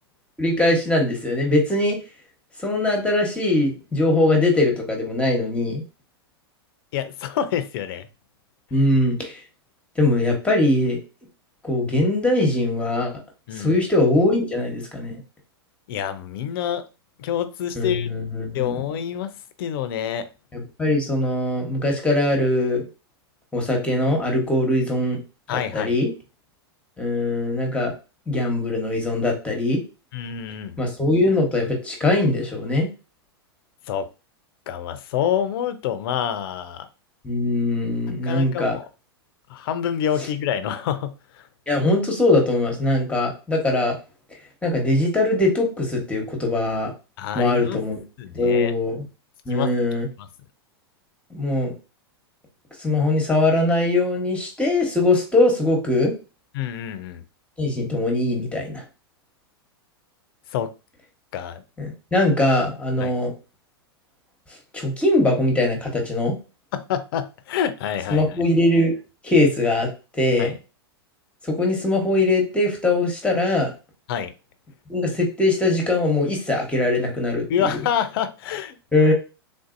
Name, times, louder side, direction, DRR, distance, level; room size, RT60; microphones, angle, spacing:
voice 1, 0.4-2.0 2.6-5.8 8.7-9.4 10.0-11.0 11.6-13.1 13.5-15.2 17.7-18.8 20.5-22.8 23.5-25.2 25.7-26.1 27.0-27.9 28.3-29.8 30.8-32.9 37.2-38.8 41.7-44.0 44.6-46.9 47.3-48.0 48.3-49.0 49.5-50.1 51.3-51.7 52.8-56.1 57.6-58.8 61.8-63.3 64.7-66.3 68.1-68.9 69.2-69.9 70.1-70.5 71.4-73.7 74.9-77.8 78.9-79.1, left 2 dB, 10° left, 1.1 m, -21 dB
voice 2, 6.9-8.1 13.5-13.8 15.9-16.8 17.2-18.1 18.5-19.3 19.6-20.2 25.5-26.0 30.1-30.8 33.9-34.1 34.7-36.9 38.2-38.8 39.5-41.1 41.4-41.5 47.2-47.8 48.2-48.7 49.5-49.7 50.2-50.3 56.5-57.2 60.5-60.7 61.3-61.6 63.0-63.1 66.7-68.2 70.4-70.5 74.1-74.3 77.5-78.8, left 9 dB, 60° left, 0.5 m, -27 dB
3.6 x 2.6 x 2.5 m
hypercardioid pair, 115°, 13 cm